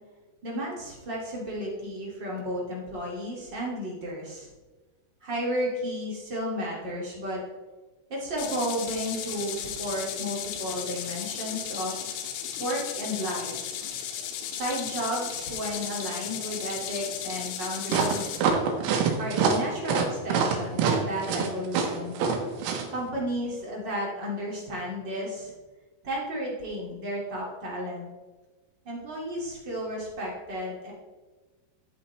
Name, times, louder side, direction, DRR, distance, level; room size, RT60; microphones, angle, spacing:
voice 1, 0.4-4.5 5.2-7.4 8.1-12.0 12.6-13.7 14.5-18.5 19.2-22.2 22.9-25.5 26.0-28.1 28.8-30.9, equal, 45° right, -4 dB, 1.5 m, -33 dB
sound 1, 8.4-18.4, left 9 dB, 80° left, 3.5 m, -35 dB
sound 2, 17.9-22.8, right 6 dB, 85° right, 4.1 m, -25 dB
14.0 x 8.8 x 3.2 m, 1.3 s
omnidirectional pair, 5.8 m